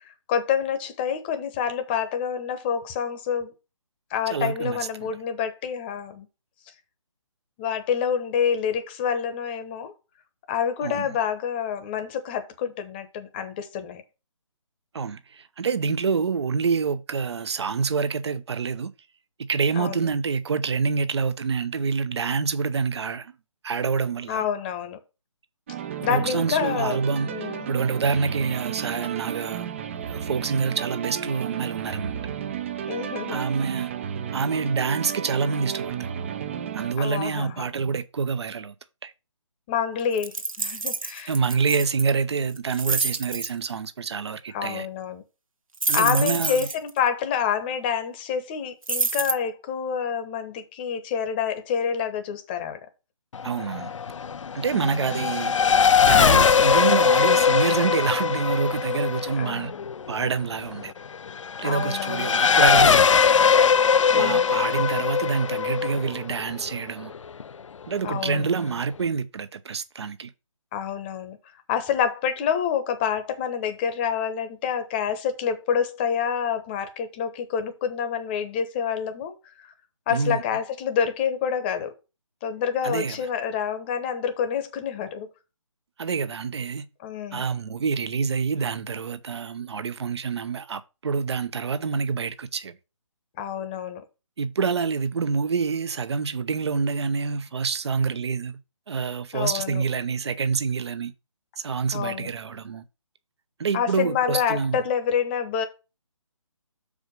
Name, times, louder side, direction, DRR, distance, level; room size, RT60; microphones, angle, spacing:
voice 1, 0.3-3.5 4.1-6.3 7.6-9.9 10.5-14.0 19.8-20.0 24.3-25.0 26.0-27.0 27.3-27.7 32.9-33.5 37.0-37.7 39.7-41.3 44.5-45.2 45.9-52.8 54.7-54.9 59.4-59.8 61.6-62.3 64.1-64.5 68.0-68.5 70.7-71.4 71.7-79.3 79.6-79.7 80.1-81.9 82.4-85.3 87.0-87.5 93.4-94.0 99.3-99.8 101.9-102.3 103.7-105.6, left 8 dB, 20° left, 1.0 m, -27 dB
voice 2, 4.3-5.1 10.8-11.1 14.9-18.9 19.5-23.4 23.6-24.5 26.1-29.7 30.1-32.2 33.3-33.9 34.3-36.1 36.7-38.7 39.0-39.1 41.3-44.9 45.9-46.7 53.4-53.9 54.5-55.5 56.0-59.7 60.1-60.9 61.6-63.1 64.1-67.1 67.9-70.3 80.1-80.4 82.8-83.2 86.0-86.9 87.3-92.7 94.4-98.6 98.9-101.1 101.6-102.8 103.6-104.8, right 5 dB, 55° right, 0.8 m, -27 dB
sound 1, 25.7-36.9, right 8 dB, 25° right, 0.5 m, -33 dB
sound 2, 40.2-42.0 42.6-43.5 45.8-46.9 48.8-49.3, right 3 dB, 90° right, 1.0 m, -27 dB
Race car auto racing / Accelerating revving vroom, 53.3-67.4, left 6 dB, 70° left, 0.5 m, -21 dB
6.4 x 4.9 x 5.3 m
figure-of-eight pair, 155°, 17 cm